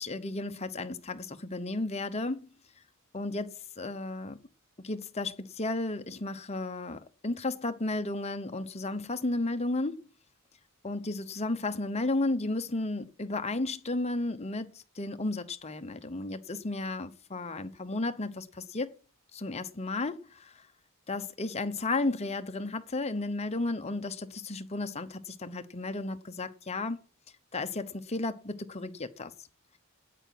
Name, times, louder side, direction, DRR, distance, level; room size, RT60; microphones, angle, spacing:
voice 1, 0.0-2.5 3.1-4.4 4.8-10.0 10.8-18.9 19.3-20.6 21.1-27.0 27.5-29.3, left 2 dB, 30° left, 0.9 m, -33 dB
9.3 x 8.8 x 7.7 m
head